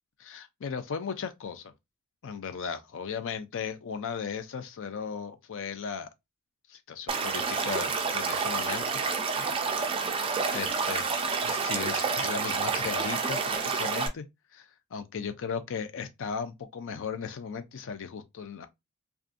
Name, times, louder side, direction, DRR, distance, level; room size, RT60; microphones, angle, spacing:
voice 1, 0.2-1.7 2.2-6.1 6.7-9.0 9.3-9.5 10.0-11.1 11.4-14.2 14.5-18.7, left 6 dB, 60° left, 0.5 m, -36 dB
Stream / Liquid, 7.1-14.1, right 5 dB, 25° right, 0.4 m, -29 dB
2.5 x 2.3 x 2.4 m
head